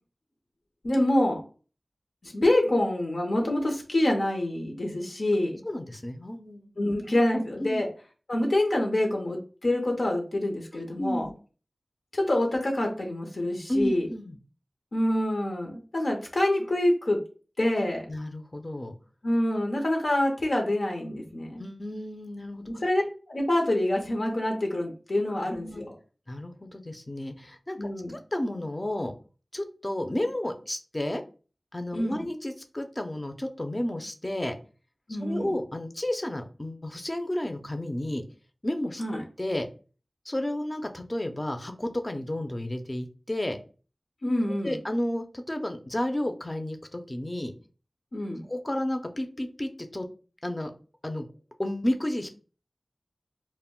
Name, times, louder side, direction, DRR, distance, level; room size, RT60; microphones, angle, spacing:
voice 1, 0.8-1.4 2.2-5.6 6.8-7.9 8.3-11.3 12.1-14.1 14.9-17.2 17.6-18.1 19.2-21.6 22.8-23.0 23.3-25.9 27.8-28.2 31.9-32.3 35.1-35.5 39.0-39.2 44.2-44.8 48.1-48.4, left 1 dB, 80° left, 1 dB, 0.6 m, -26 dB
voice 2, 5.6-6.9 7.6-7.8 10.7-11.3 13.7-14.4 18.1-18.9 21.6-22.6 25.5-25.8 26.3-29.1 29.5-31.2 31.7-34.6 35.2-38.2 38.6-39.7 40.3-43.6 44.6-47.5 48.4-50.1 50.4-50.7 51.0-51.2 51.6-52.3, left 1 dB, 30° left, 6 dB, 0.5 m, -32 dB
2.1 x 2.0 x 3.6 m, 0.36 s
wide cardioid pair, 40°, 0 cm